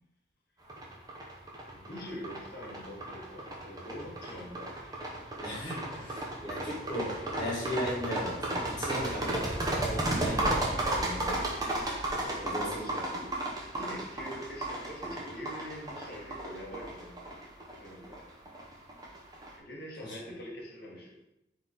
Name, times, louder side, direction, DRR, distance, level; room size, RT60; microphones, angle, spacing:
sound 1, 0.7-19.5, right 1 dB, 20° right, 0.6 m, -34 dB
voice 1, 1.7-4.7 10.2-10.5 12.1-13.2 13.7-17.4 17.8-18.3 19.6-21.1, equal, 55° left, -3 dB, 1.1 m, -44 dB
voice 2, 5.4-9.5 9.9-11.4 12.4-12.8 13.1-13.2 20.0-20.2, equal, 25° left, -7 dB, 1.3 m, -37 dB
3.6 x 2.9 x 3.9 m, 0.85 s
head